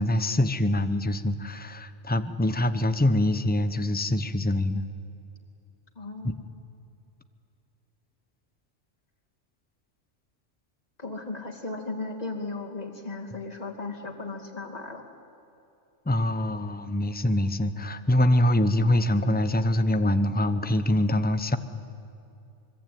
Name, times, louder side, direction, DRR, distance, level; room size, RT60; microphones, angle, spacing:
voice 1, 0.0-4.8 6.2-6.3 16.1-21.6, left 1 dB, 10° left, 11 dB, 0.8 m, -24 dB
voice 2, 6.0-6.4 11.0-15.0, left 3 dB, 35° left, 1 dB, 2.6 m, -36 dB
25.0 x 22.5 x 9.3 m, 2.8 s
omnidirectional pair, 1.3 m